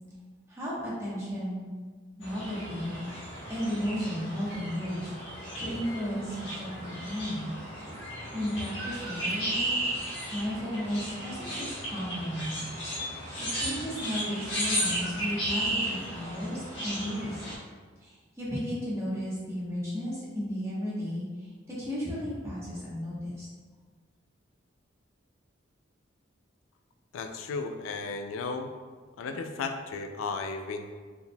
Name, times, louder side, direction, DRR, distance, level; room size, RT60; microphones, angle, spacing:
voice 1, 0.5-1.7 2.2-2.9 3.5-7.5 8.3-9.8 10.3-12.6 13.2-17.5 18.0-23.5, equal, 15° right, -8 dB, 1.0 m, -34 dB
sound 1, 2.2-17.5, right 1 dB, 65° left, 1.1 m, -35 dB
voice 2, 27.1-28.7 29.2-30.9, left 4 dB, 85° left, 6 dB, 0.3 m, -34 dB
4.5 x 3.5 x 2.2 m, 1.5 s
head